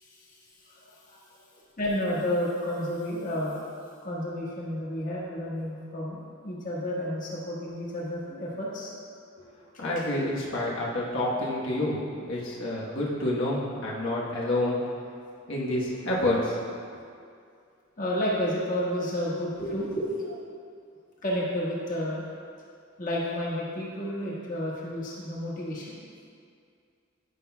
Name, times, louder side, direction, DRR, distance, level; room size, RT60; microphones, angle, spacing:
voice 1, 0.7-1.2 1.8-3.6 4.0-9.0 9.7-9.8 18.0-20.4 21.2-22.2 23.0-26.0, equal, 40° left, -6 dB, 1.4 m, -31 dB
voice 2, 9.8-14.8 15.5-16.6, left 1 dB, 70° left, -5 dB, 1.2 m, -28 dB
9.7 x 5.6 x 2.2 m, 2.3 s
head